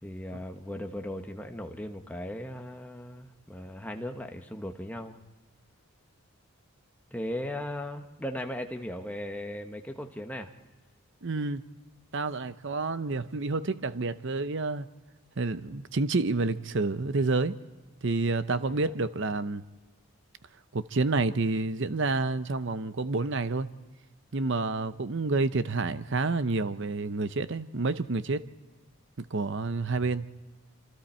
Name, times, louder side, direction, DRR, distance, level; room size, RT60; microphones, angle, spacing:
voice 1, 0.0-5.2 7.1-10.5 18.8-18.9, left 1 dB, 5° left, 1.1 m, -37 dB
voice 2, 11.2-11.6 12.1-14.9 15.4-17.6 18.0-19.6 20.7-23.7 24.3-28.4 29.2-30.2, right 3 dB, 55° right, 0.7 m, -29 dB
27.0 x 26.5 x 4.4 m
head